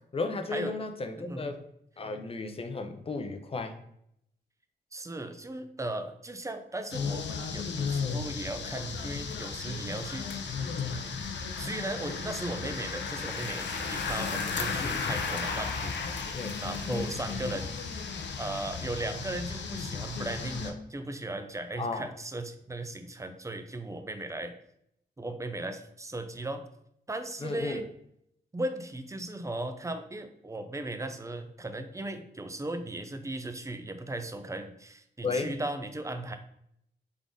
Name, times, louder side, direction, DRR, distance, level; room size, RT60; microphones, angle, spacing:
voice 1, 0.1-1.6 2.0-3.8 14.8-15.0 16.3-16.5 16.9-17.1 21.8-22.1 27.4-27.8 35.2-35.6, left 3 dB, 30° left, 7 dB, 0.5 m, -34 dB
voice 2, 1.2-1.5 4.9-10.6 11.6-17.7 18.4-24.5 25.2-26.6 27.1-27.8 28.5-36.4, right 2 dB, 15° right, 8 dB, 0.5 m, -37 dB
sound 1, 6.9-20.7, left 5 dB, 80° left, 0.5 m, -34 dB
3.8 x 3.6 x 3.6 m, 0.73 s
wide cardioid pair, 100°, 18 cm